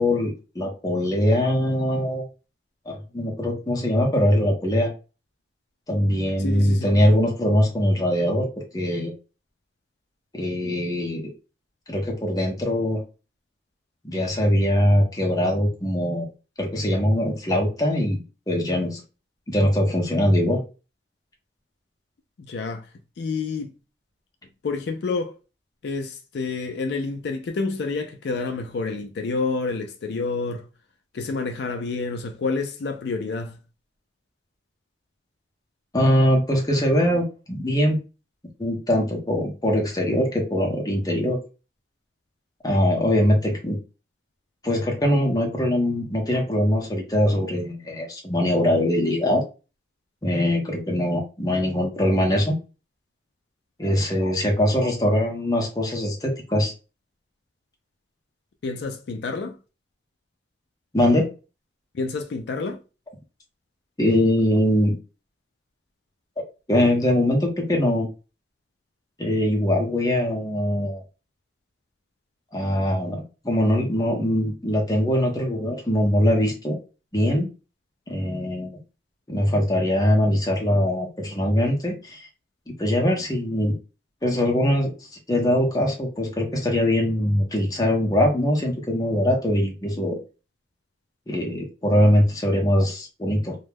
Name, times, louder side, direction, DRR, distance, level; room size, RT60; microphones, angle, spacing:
voice 1, 0.0-2.2 2.9-4.9 5.9-8.5 8.7-9.1 10.3-11.2 11.9-13.0 14.0-16.3 16.6-18.2 18.5-19.0 19.5-20.6 35.9-38.0 38.6-41.4 42.6-43.8 44.6-49.4 50.2-52.6 53.8-56.7 60.9-61.3 64.0-65.0 66.7-68.1 69.2-71.0 72.5-76.8 77.1-77.5 78.1-78.7 79.3-82.3 82.7-83.7 84.2-84.9 85.3-90.2 91.3-93.6, left 1 dB, 20° left, 0.7 m, -22 dB
voice 2, 6.4-6.9 22.4-22.9 23.2-23.7 24.6-25.4 25.8-30.7 31.1-33.6 58.6-59.6 61.9-62.8, left 4 dB, 70° left, 0.4 m, -28 dB
2.2 x 2.1 x 3.2 m
head